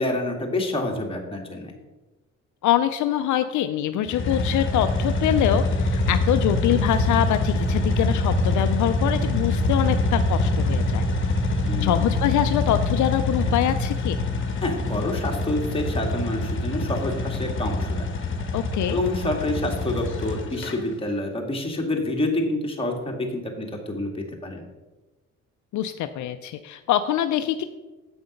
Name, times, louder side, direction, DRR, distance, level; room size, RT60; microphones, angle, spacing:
voice 1, 0.0-1.7 11.7-12.0 14.6-18.1 18.9-24.6, left 1 dB, 20° left, 0 dB, 1.8 m, -27 dB
voice 2, 2.6-11.0 11.8-14.2 18.5-19.0 25.7-27.6, left 11 dB, 75° left, 9 dB, 0.5 m, -24 dB
sound 1, 4.1-20.7, left 2 dB, 40° left, 1.3 m, -25 dB
7.8 x 5.6 x 5.2 m, 1.1 s
cardioid pair, 90°, 30 cm